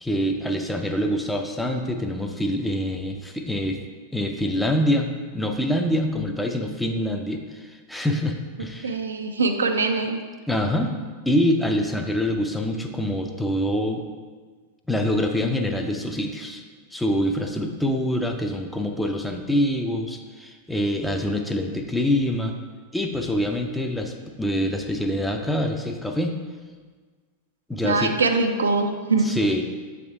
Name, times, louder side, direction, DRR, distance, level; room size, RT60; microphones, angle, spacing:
voice 1, 0.0-3.8 4.1-5.1 5.3-9.0 10.5-10.9 11.3-14.0 14.9-16.6 16.9-22.5 22.9-26.4 27.7-28.1 29.2-29.6, equal, 5° left, 4 dB, 0.5 m, -25 dB
voice 2, 8.8-10.2 27.8-29.3, right 3 dB, 70° right, 6 dB, 0.4 m, -23 dB
7.6 x 3.6 x 3.4 m, 1.5 s
figure-of-eight pair, 90°, 0 cm